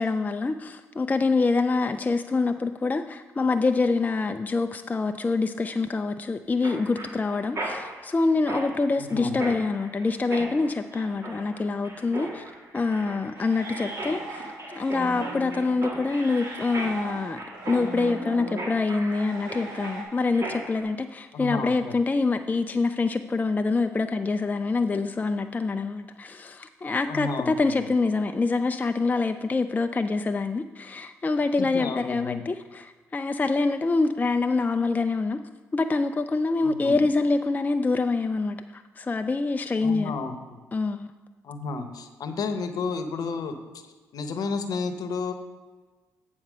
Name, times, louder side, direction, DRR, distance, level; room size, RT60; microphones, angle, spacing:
voice 1, 0.0-14.4 14.7-17.4 17.7-35.4 35.7-40.1 40.7-41.1, left 3 dB, 25° left, 8 dB, 0.4 m, -26 dB
Mechanisms, 6.6-20.8, right 1 dB, 45° right, 1.9 m, -38 dB
voice 2, 9.0-9.6 21.3-22.0 27.1-27.9 31.6-32.4 36.6-37.0 39.8-40.6 41.4-43.6 44.1-45.3, left 4 dB, 60° left, 8 dB, 0.9 m, -32 dB
sound 1, 13.3-20.0, right 2 dB, 70° right, 1.6 m, -39 dB
8.9 x 4.3 x 6.1 m, 1.3 s
hypercardioid pair, 50°, 7 cm